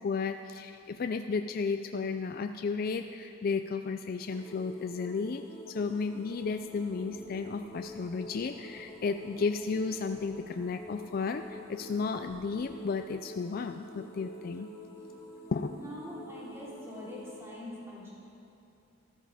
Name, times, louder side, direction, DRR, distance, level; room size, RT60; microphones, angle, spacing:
voice 1, 0.0-14.7 15.5-15.7, left 4 dB, 50° left, 7 dB, 0.4 m, -33 dB
sound 1, 4.3-17.4, equal, 20° left, 1.3 m, -47 dB
sound 2, 6.3-12.8, equal, 45° right, 2.0 m, -60 dB
voice 2, 15.7-18.1, left 1 dB, 15° right, -8 dB, 3.8 m, -43 dB
14.0 x 12.5 x 4.9 m, 2.7 s
head